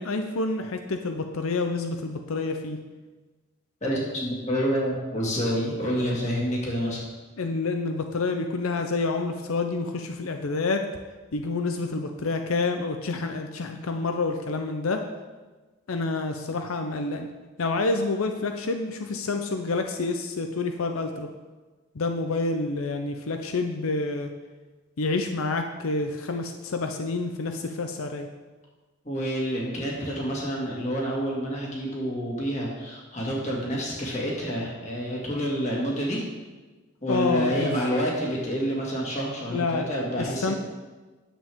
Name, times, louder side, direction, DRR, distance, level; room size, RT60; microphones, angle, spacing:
voice 1, 0.0-2.8 7.4-10.8 11.3-15.0 15.9-17.3 17.6-21.3 21.9-24.3 25.0-28.3 37.1-37.7 39.5-39.8 40.2-40.6, left 3 dB, 90° left, 5 dB, 0.6 m, -28 dB
voice 2, 3.8-7.0 29.0-36.2 37.0-40.6, equal, 35° left, -3 dB, 2.0 m, -28 dB
10.0 x 7.6 x 3.6 m, 1.3 s
head